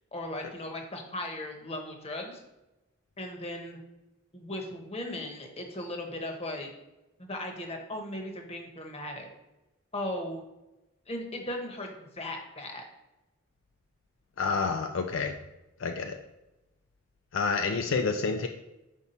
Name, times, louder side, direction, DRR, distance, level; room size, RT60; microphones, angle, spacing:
voice 1, 0.1-2.4 3.2-3.8 4.3-6.7 7.2-9.3 9.9-10.4 11.1-12.8, left 1 dB, 30° left, 3 dB, 0.9 m, -37 dB
voice 2, 14.4-15.3 15.8-16.2 17.3-18.5, left 4 dB, 65° left, 5 dB, 0.4 m, -28 dB
5.5 x 4.6 x 4.2 m, 0.98 s
head